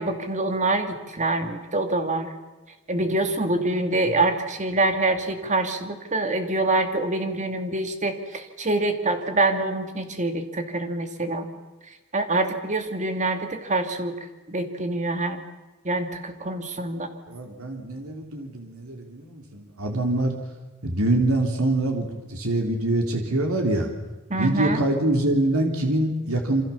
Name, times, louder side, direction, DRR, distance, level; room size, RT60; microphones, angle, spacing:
voice 1, 0.0-2.3 2.9-11.5 12.1-14.1 14.5-15.4 15.8-17.1 24.3-24.8, right 2 dB, 35° right, 6 dB, 2.5 m, -25 dB
voice 2, 17.3-20.4 20.8-23.9 24.4-26.6, right 1 dB, 90° right, 3 dB, 3.4 m, -24 dB
27.5 x 25.0 x 7.1 m, 1.2 s
head